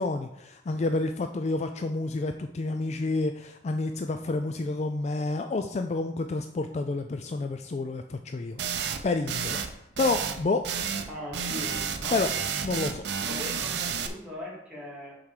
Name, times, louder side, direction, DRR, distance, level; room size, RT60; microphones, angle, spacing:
voice 1, 0.0-8.6 9.0-9.6 10.0-10.6 12.1-12.3 12.6-13.0, left 3 dB, 40° left, 7 dB, 0.4 m, -29 dB
sound 1, 8.6-9.0 9.3-9.7 10.0-10.4 10.6-11.1 11.3-14.1, right 7 dB, 75° right, 0.7 m, -31 dB
voice 2, 11.1-12.3 13.3-15.1, left 1 dB, 5° right, -7 dB, 2.9 m, -40 dB
5.8 x 4.7 x 6.5 m, 0.84 s
head